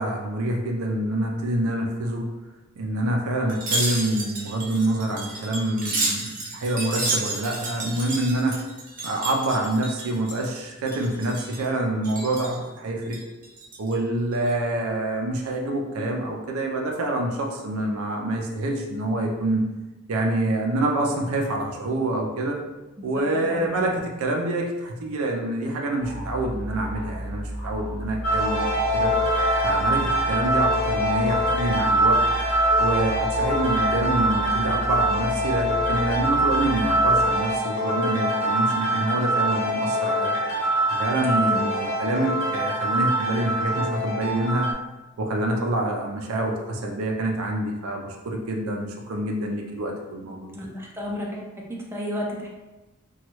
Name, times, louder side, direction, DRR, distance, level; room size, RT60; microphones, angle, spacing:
voice 1, 0.0-2.3 2.8-8.6 9.0-13.2 13.8-19.6 20.1-22.6 23.0-29.1 29.6-32.2 32.8-40.3 40.9-44.7 45.2-50.6, right 1 dB, 80° right, 1 dB, 0.4 m, -26 dB
Wind chime, 3.5-10.6 10.9-11.7 12.0-12.6 13.0-13.9 14.3-14.5, right 2 dB, 40° right, 0.7 m, -31 dB
sound 1, 26.0-37.2, right 1 dB, 35° left, 0.6 m, -34 dB
sound 2, 28.2-44.7, right 1 dB, 75° left, 0.7 m, -23 dB
voice 2, 41.2-41.6 50.6-52.5, equal, 10° right, -2 dB, 0.4 m, -33 dB
2.9 x 2.3 x 3.0 m, 1.1 s
head